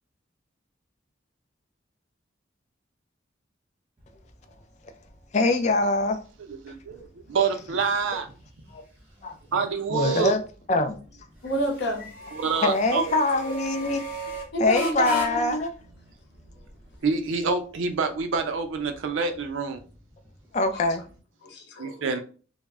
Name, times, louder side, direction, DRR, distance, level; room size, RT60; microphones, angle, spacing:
sound 1, 4.0-21.2, right 1 dB, 10° right, 0.6 m, -41 dB
voice 1, 5.3-6.2 7.4-7.6 8.7-8.8 9.2-9.3 9.9-10.4 10.7-11.0 12.6-14.0 14.6-15.7 20.5-21.0, left 2 dB, 35° left, 0.3 m, -24 dB
voice 2, 6.6-8.3 9.5-10.4 12.3-13.0 17.0-19.8 21.8-22.2, right 5 dB, 90° right, 0.5 m, -27 dB
voice 3, 11.4-12.1 14.5-15.6 21.4-22.0, equal, 65° left, 0.8 m, -29 dB
2.1 x 2.0 x 3.5 m
head